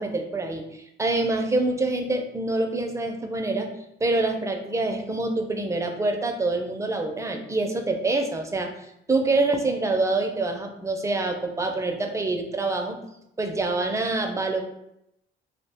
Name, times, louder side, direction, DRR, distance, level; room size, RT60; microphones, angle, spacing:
voice 1, 0.0-3.7 4.0-8.7 9.1-13.0 13.4-14.6, right 2 dB, 15° right, 4 dB, 0.4 m, -26 dB
2.4 x 2.0 x 3.4 m, 0.81 s
cardioid pair, 90°, 20 cm